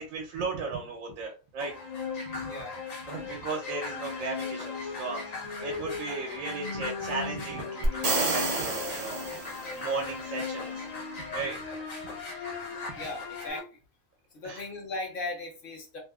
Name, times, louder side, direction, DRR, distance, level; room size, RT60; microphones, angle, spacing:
voice 1, 0.0-1.7 2.2-2.5 3.1-5.3 5.6-10.9 11.2-11.6 14.4-14.6, right 4 dB, 90° right, 1 dB, 1.0 m, -36 dB
sound 1, 1.6-13.6, left 4 dB, 70° left, 0.3 m, -37 dB
voice 2, 2.4-2.8 13.0-13.7 14.3-16.0, left 2 dB, 50° left, 1 dB, 0.8 m, -37 dB
sound 2, 7.8-9.9, right 3 dB, 55° right, 0.4 m, -29 dB
2.8 x 2.0 x 2.2 m, 0.33 s
omnidirectional pair, 1.4 m